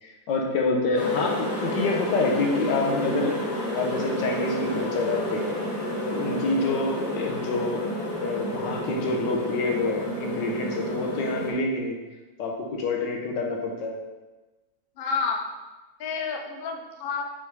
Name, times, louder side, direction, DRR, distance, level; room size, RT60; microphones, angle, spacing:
voice 1, 0.0-3.3 3.7-5.6 6.0-7.8 8.2-12.0 12.4-14.0, left 3 dB, 90° left, 0 dB, 1.6 m, -27 dB
sound 1, 0.9-11.5, equal, 40° left, 1.6 m, -30 dB
voice 2, 15.0-15.5 16.0-17.2, left 5 dB, 60° left, 2 dB, 0.5 m, -30 dB
6.0 x 3.6 x 4.7 m, 1.2 s
omnidirectional pair, 1.8 m